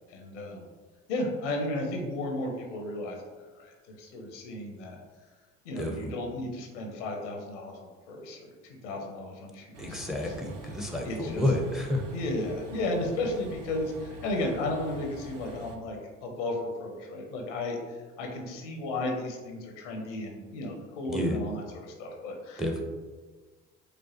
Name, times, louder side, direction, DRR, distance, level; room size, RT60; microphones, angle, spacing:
voice 1, 0.1-0.7 1.1-3.2 3.6-5.0 5.6-10.0 10.2-10.3 11.0-11.4 12.1-22.8, left 2 dB, 90° left, 1 dB, 0.7 m, -34 dB
voice 2, 5.8-6.1 9.8-12.0 21.1-21.4 22.6-22.7, left 1 dB, ahead, 2 dB, 0.7 m, -30 dB
Train, 9.7-15.8, right 2 dB, 70° right, 0.7 m, -45 dB
5.0 x 2.1 x 2.9 m, 1.4 s
hypercardioid pair, 65°, 35 cm